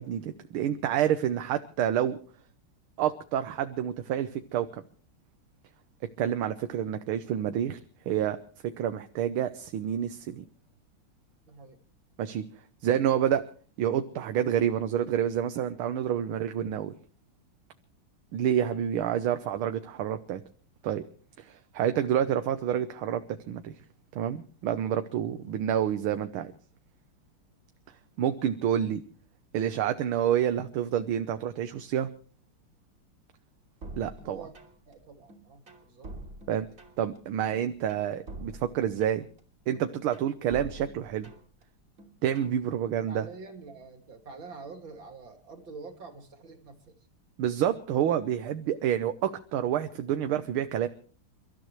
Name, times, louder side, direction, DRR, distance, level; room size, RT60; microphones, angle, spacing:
voice 1, 0.0-2.2 3.0-4.8 6.2-7.8 8.1-8.4 8.6-10.5 12.2-12.4 12.8-13.4 13.8-16.9 18.3-20.4 20.8-21.0 21.4-23.7 24.2-26.5 28.2-29.0 29.5-32.1 34.0-34.5 36.5-36.7 37.0-39.2 39.7-41.3 42.2-43.3 47.4-50.9, right 10 dB, 80° right, 9 dB, 1.7 m, -28 dB
voice 2, 11.5-11.8 34.2-34.6 34.9-36.1 43.1-47.0, right 4 dB, 60° right, 5 dB, 3.2 m, -46 dB
sound 1, 33.8-34.9 35.3-37.2 37.5-39.4 39.7-41.6 42.0-42.6, right 2 dB, 40° right, 3.3 m, -46 dB
29.5 x 14.0 x 3.1 m, 0.42 s
omnidirectional pair, 2.3 m